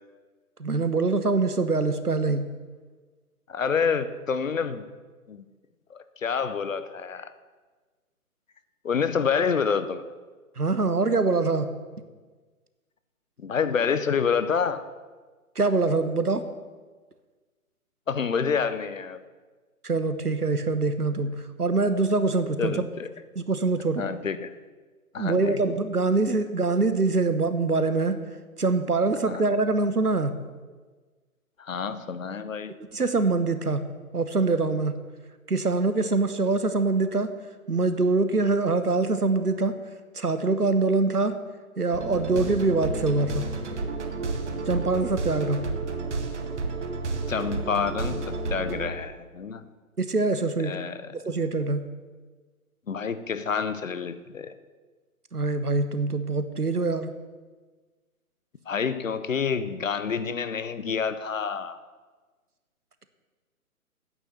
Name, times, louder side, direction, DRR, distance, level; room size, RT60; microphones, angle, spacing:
voice 1, 0.6-2.5 10.6-11.7 15.6-16.4 19.8-22.8 23.4-24.1 25.2-28.2 28.6-30.3 32.9-33.8 34.1-35.0 35.5-37.3 37.7-39.8 40.1-41.4 41.8-43.5 44.6-45.6 50.0-50.8 51.1-51.9 55.3-57.1, right 3 dB, 90° right, 11 dB, 1.0 m, -24 dB
voice 2, 3.5-4.9 5.3-5.5 5.9-7.3 8.8-10.1 13.4-14.8 18.1-19.2 22.6-23.1 24.0-24.5 25.1-25.6 29.3-29.4 31.6-32.7 47.3-49.6 50.6-51.1 52.9-54.5 58.7-61.8, left 6 dB, 60° left, 13 dB, 0.8 m, -28 dB
sound 1, 41.9-48.9, right 3 dB, 50° right, 1.3 m, -31 dB
9.0 x 6.7 x 7.8 m, 1.4 s
figure-of-eight pair, 140°, 44 cm